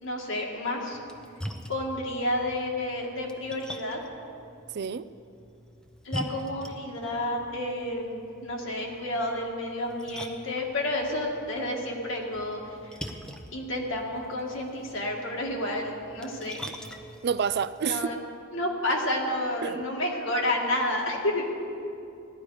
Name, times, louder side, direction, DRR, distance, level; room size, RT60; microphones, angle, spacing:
voice 1, 0.0-1.0 1.7-4.0 6.0-13.0 13.5-16.6 17.8-18.2 18.5-21.5, left 1 dB, 65° left, -1 dB, 2.1 m, -30 dB
Splash splatter, 0.9-18.0, equal, 5° left, 0.8 m, -44 dB
voice 2, 4.7-5.1 17.2-18.2 19.6-19.9, right 7 dB, 50° right, 15 dB, 0.4 m, -29 dB
17.0 x 12.5 x 4.9 m, 2.6 s
head